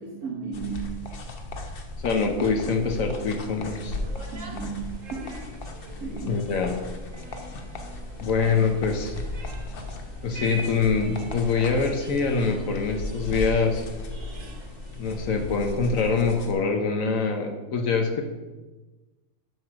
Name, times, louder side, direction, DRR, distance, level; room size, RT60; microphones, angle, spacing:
voice 1, 0.0-1.1 4.3-5.5 6.0-6.5, right 5 dB, 85° right, -5 dB, 1.9 m, -35 dB
sound 1, 0.5-16.5, left 2 dB, 45° left, 0.9 m, -36 dB
voice 2, 2.0-4.0 6.2-6.8 8.2-9.2 10.2-13.8 15.0-18.2, left 4 dB, 70° left, 4 dB, 1.2 m, -24 dB
sound 2, 3.7-15.6, equal, 60° right, 1.7 m, -44 dB
7.8 x 4.7 x 6.0 m, 1.2 s
omnidirectional pair, 1.5 m